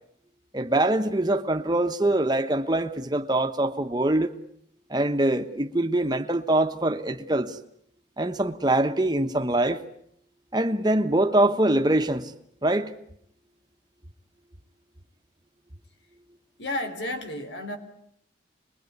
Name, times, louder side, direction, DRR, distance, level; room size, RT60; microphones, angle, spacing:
voice 1, 0.5-4.3 4.9-7.6 8.2-9.8 10.5-12.3 12.6-12.9, right 1 dB, 20° right, 1.2 m, -23 dB
voice 2, 16.6-17.8, left 1 dB, 70° left, 3.7 m, -32 dB
25.5 x 21.5 x 9.5 m
head